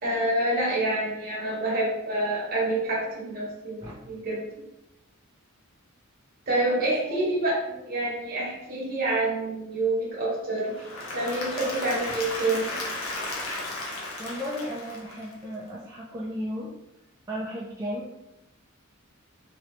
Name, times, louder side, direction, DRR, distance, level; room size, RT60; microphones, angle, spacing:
voice 1, 0.0-4.4 6.5-7.6 7.9-10.9 11.1-12.7, right 2 dB, 45° right, -4 dB, 1.2 m, -27 dB
voice 2, 6.7-7.2 7.7-7.8 14.2-16.7 17.3-18.2, equal, 15° right, -7 dB, 0.4 m, -35 dB
Applause / Crowd, 10.6-15.6, left 2 dB, 70° left, 0.8 m, -34 dB
3.1 x 2.8 x 3.0 m, 0.91 s
head